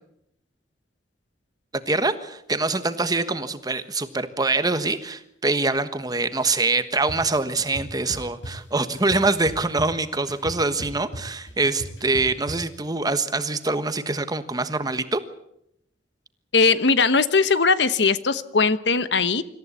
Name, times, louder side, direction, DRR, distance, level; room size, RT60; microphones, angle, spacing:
voice 1, 1.9-15.2, right 3 dB, 20° right, 10 dB, 1.3 m, -24 dB
sound 1, 7.1-7.2 7.6-8.5 8.9-10.0 10.3-12.6, equal, 90° left, 5.8 m, -36 dB
voice 2, 16.5-19.4, left 4 dB, 70° left, 13 dB, 1.1 m, -19 dB
26.0 x 14.5 x 8.3 m, 0.77 s
head